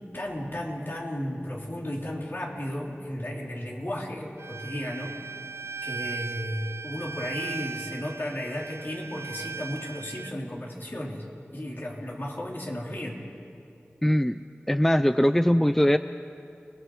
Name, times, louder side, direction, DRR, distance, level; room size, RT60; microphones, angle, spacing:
voice 1, 0.1-5.2 5.8-11.2 11.5-13.2, left 1 dB, 50° left, -2 dB, 3.6 m, -34 dB
Bowed string instrument, 4.4-10.3, right 4 dB, 85° right, 0.5 m, -38 dB
voice 2, 14.0-14.4 14.7-16.0, equal, 5° left, 11 dB, 0.4 m, -21 dB
30.0 x 20.5 x 4.8 m, 2.6 s
wide cardioid pair, 55°, 4 cm